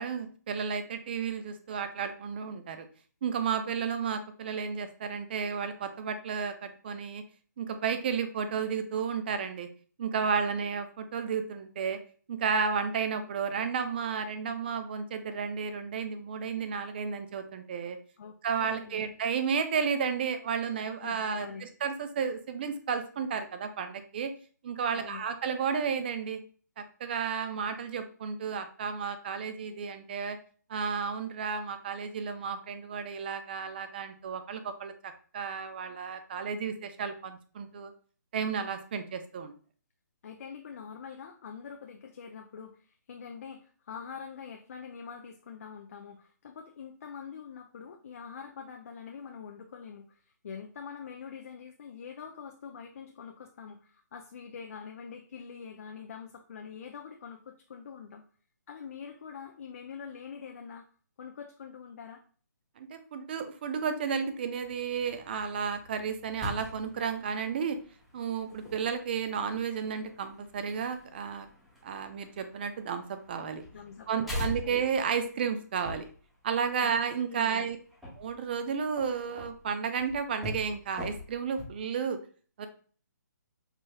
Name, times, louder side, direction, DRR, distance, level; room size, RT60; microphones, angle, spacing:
voice 1, 0.0-2.9 3.2-7.2 7.6-9.7 10.0-12.0 12.3-18.0 18.4-24.3 24.6-26.4 26.8-30.4 30.7-34.9 35.3-37.9 38.3-39.5 62.8-67.8 68.1-71.5 71.8-73.6 74.1-76.1 76.4-77.8 78.2-82.2 82.6-82.7, right 6 dB, 35° right, 9 dB, 0.4 m, -32 dB
voice 2, 18.2-19.1 21.0-21.6 24.9-25.2 40.2-58.2 58.7-60.9 61.2-62.2 73.7-75.1 76.8-76.9 77.3-77.7, left 6 dB, 50° left, 3 dB, 0.4 m, -45 dB
sound 1, 64.6-81.8, left 1 dB, ahead, 0.7 m, -44 dB
4.8 x 3.0 x 2.2 m, 0.42 s
hypercardioid pair, 160°, 10 cm